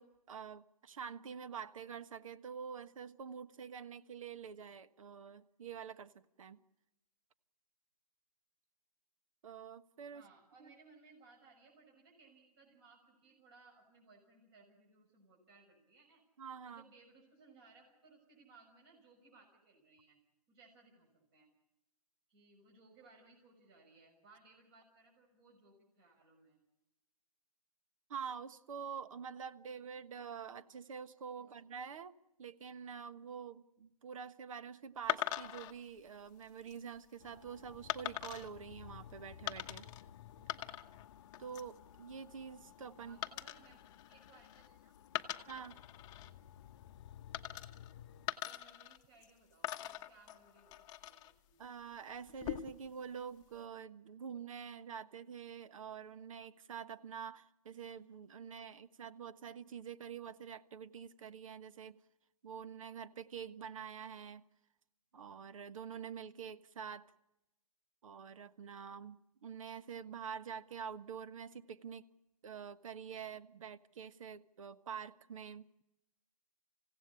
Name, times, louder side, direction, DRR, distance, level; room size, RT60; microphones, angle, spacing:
voice 1, 0.0-6.1 6.4-6.6 9.4-10.2 10.6-10.7 16.4-16.8 28.1-39.9 41.4-43.2 45.5-45.8 51.6-62.0 62.4-64.4 65.1-67.0 68.0-72.0 72.4-75.7, right 7 dB, 60° right, 13 dB, 1.4 m, -47 dB
voice 2, 10.1-16.2 16.7-20.2 20.5-21.5 22.3-26.6 31.4-31.6 43.0-43.8 44.1-45.0 45.3-45.4 48.5-50.7 51.0-51.2 51.5-51.6, right 3 dB, 40° right, 0 dB, 6.7 m, -64 dB
sound 1, 35.1-35.7 36.4-36.8 37.9-38.5 39.5-40.0 40.3-41.1 41.3-41.8 43.2-44.7 45.1-46.3 47.3-47.9 48.3-49.3 49.6-51.3 52.3-52.9, left 12 dB, 20° left, 1.0 m, -42 dB
sound 2, 37.2-48.3, left 10 dB, 45° left, 0.8 m, -56 dB
28.0 x 16.5 x 8.5 m, 0.93 s
hypercardioid pair, 150°, 20 cm